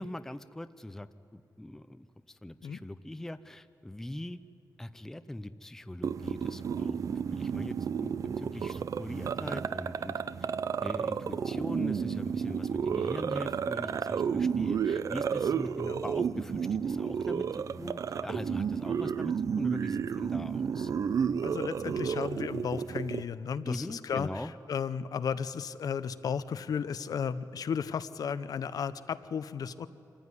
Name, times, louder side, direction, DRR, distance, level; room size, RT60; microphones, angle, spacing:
voice 1, 0.0-4.4 4.8-10.2 10.8-20.9 23.6-24.5, left 1 dB, 5° left, 12 dB, 0.4 m, -41 dB
sound 1, 6.0-23.2, right 7 dB, 55° right, 0.4 m, -32 dB
voice 2, 21.4-29.9, left 7 dB, 65° left, 13 dB, 0.7 m, -34 dB
25.5 x 14.5 x 9.7 m, 2.9 s
wide cardioid pair, 165°, 7 cm